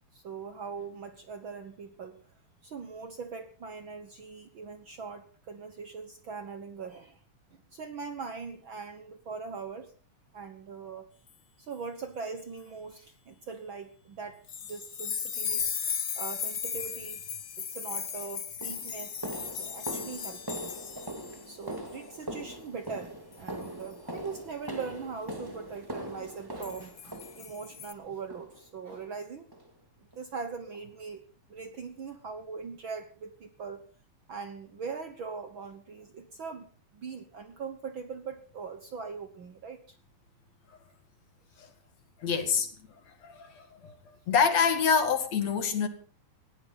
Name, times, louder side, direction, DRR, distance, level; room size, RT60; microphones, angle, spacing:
voice 1, 0.1-2.2 2.6-7.2 7.5-9.9 10.3-11.1 11.6-15.7 16.2-17.2 17.6-20.8 21.5-29.5 30.0-31.2 31.5-33.8 34.3-40.0 45.4-45.5, right 5 dB, 55° right, 1.6 m, -41 dB
sound 1, 14.5-21.4 21.7-22.0 23.3-23.6 26.6-27.9, left 7 dB, 80° left, 0.7 m, -36 dB
sound 2, 17.9-18.1 18.6-27.8 28.3-28.6 28.9-29.1 29.5-29.7 30.1-30.2 30.7-30.8, right 1 dB, 10° right, 1.9 m, -41 dB
voice 2, 42.2-42.7 43.1-43.9 44.3-45.9, left 6 dB, 60° left, 3.1 m, -26 dB
19.0 x 16.0 x 4.0 m
omnidirectional pair, 3.5 m